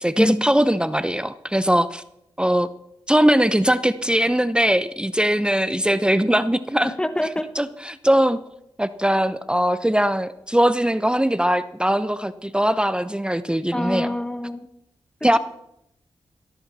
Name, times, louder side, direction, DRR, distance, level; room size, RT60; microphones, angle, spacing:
voice 1, 0.0-2.0 2.4-2.7 3.1-6.9 7.6-8.4 8.8-14.1 15.2-15.4, equal, 10° right, 13 dB, 0.7 m, -20 dB
voice 2, 6.8-7.5 13.7-14.7 15.3-15.4, left 1 dB, 10° left, 10 dB, 1.3 m, -25 dB
16.5 x 14.0 x 4.2 m, 0.80 s
supercardioid pair, 40°, 10 cm